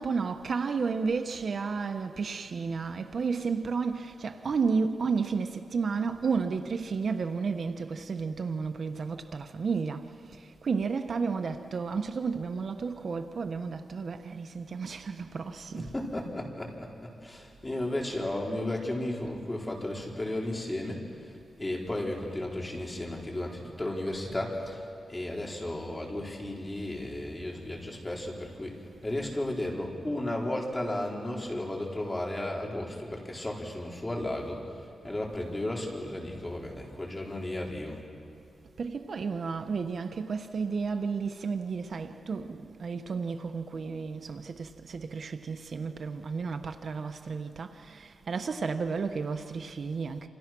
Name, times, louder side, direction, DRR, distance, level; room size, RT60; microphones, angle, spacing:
voice 1, 0.0-10.0 10.3-15.9 38.8-50.3, right 5 dB, 55° right, 1.1 m, -32 dB
voice 2, 15.7-38.0, left 1 dB, 15° left, 4.6 m, -34 dB
28.5 x 28.0 x 6.2 m
cardioid pair, 95°, 0 cm